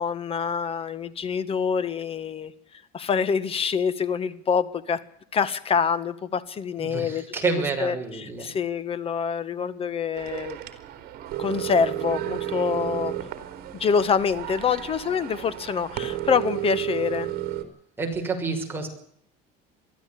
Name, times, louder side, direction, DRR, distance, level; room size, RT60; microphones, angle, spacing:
voice 1, 0.0-2.5 2.9-5.0 5.3-7.2 7.8-10.6 11.4-13.1 13.7-17.3, left 6 dB, 30° left, 16 dB, 1.6 m, -26 dB
voice 2, 6.8-8.5 18.0-18.9, right 4 dB, 10° right, 1 dB, 6.1 m, -29 dB
sound 1, 10.1-17.6, right 13 dB, 55° right, 3.8 m, -32 dB
23.0 x 14.0 x 8.6 m, 0.67 s
cardioid pair, 140°, 20 cm